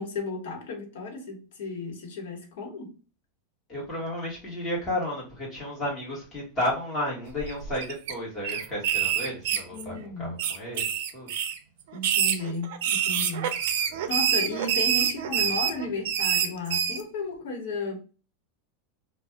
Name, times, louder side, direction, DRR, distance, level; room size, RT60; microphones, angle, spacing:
voice 1, 0.0-2.9 9.7-10.5 11.9-13.6 14.1-18.0, left 3 dB, 75° left, 1.1 m, -34 dB
voice 2, 3.7-11.3, left 1 dB, 15° left, 1.4 m, -32 dB
sound 1, 7.4-8.1 8.4-10.0 10.4-11.6 12.0-17.0, right 9 dB, 65° right, 0.5 m, -26 dB
2.7 x 2.2 x 3.4 m
supercardioid pair, 170°, 0 cm